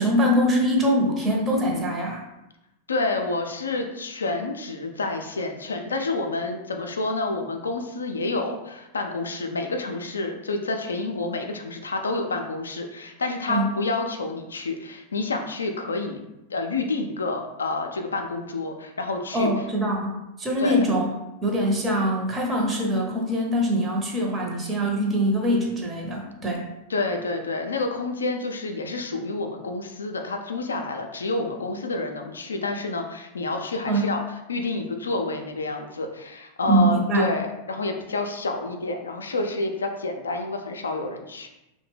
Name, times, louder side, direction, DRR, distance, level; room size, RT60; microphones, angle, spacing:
voice 1, 0.0-2.2 13.5-13.7 19.3-21.1 21.4-26.7 33.9-34.1 36.6-37.3, equal, 20° right, -1 dB, 0.6 m, -23 dB
voice 2, 2.9-16.2 16.5-19.5 20.6-20.8 26.9-34.2 34.5-41.5, left 3 dB, 70° left, 4 dB, 0.3 m, -29 dB
2.7 x 2.1 x 3.2 m, 0.92 s
figure-of-eight pair, 90°, 0 cm